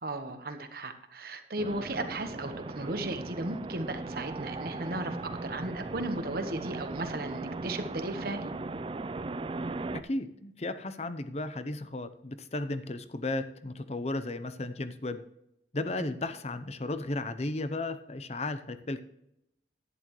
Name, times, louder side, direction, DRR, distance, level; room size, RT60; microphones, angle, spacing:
voice 1, 0.0-5.2 5.4-8.5, right 2 dB, 55° right, 7 dB, 1.1 m, -35 dB
sound 1, 1.6-10.0, right 3 dB, 30° right, 0.4 m, -38 dB
voice 2, 9.9-15.2 15.7-19.0, left 2 dB, 35° left, 11 dB, 0.7 m, -34 dB
11.0 x 10.5 x 3.1 m, 0.80 s
head